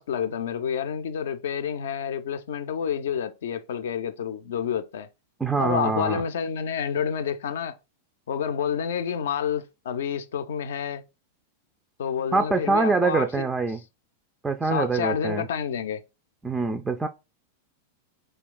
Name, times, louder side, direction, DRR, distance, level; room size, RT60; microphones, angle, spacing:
voice 1, 0.0-5.1 5.5-7.8 8.3-11.0 12.0-13.4 14.6-16.0, left 7 dB, 65° left, 0.4 m, -29 dB
voice 2, 5.4-6.2 12.3-13.8 14.4-15.5 16.4-17.1, right 4 dB, 10° right, 0.3 m, -24 dB
2.4 x 2.3 x 3.6 m
figure-of-eight pair, 95°, 0 cm